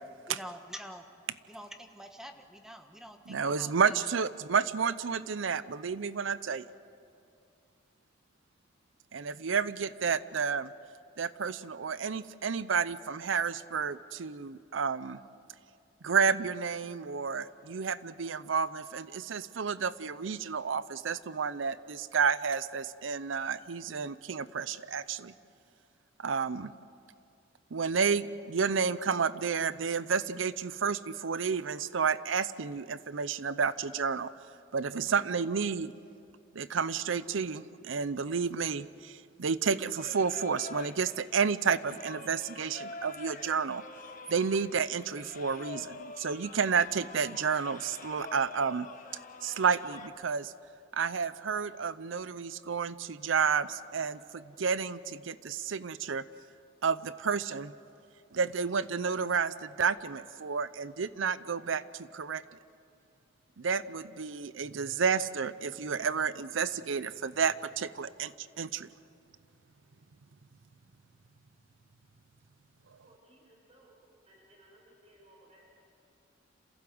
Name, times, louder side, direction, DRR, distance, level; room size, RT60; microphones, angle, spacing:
voice 1, 0.2-1.1 1.5-4.0, equal, 5° right, 5 dB, 1.3 m, -46 dB
voice 2, 3.3-6.7 9.1-10.7 11.2-15.2 16.0-25.3 26.2-26.7 27.7-34.3 34.7-35.9 36.5-43.8 44.3-48.9 49.4-50.5 50.9-56.2 56.8-57.7 58.3-62.4 63.6-68.9, right 6 dB, 90° right, 16 dB, 0.6 m, -31 dB
Singing, 39.9-50.1, left 3 dB, 45° left, 1.3 m, -47 dB
voice 3, 73.0-74.0 74.3-75.9, right 1 dB, 35° right, -1 dB, 5.6 m, -60 dB
27.5 x 15.5 x 7.8 m, 2.4 s
head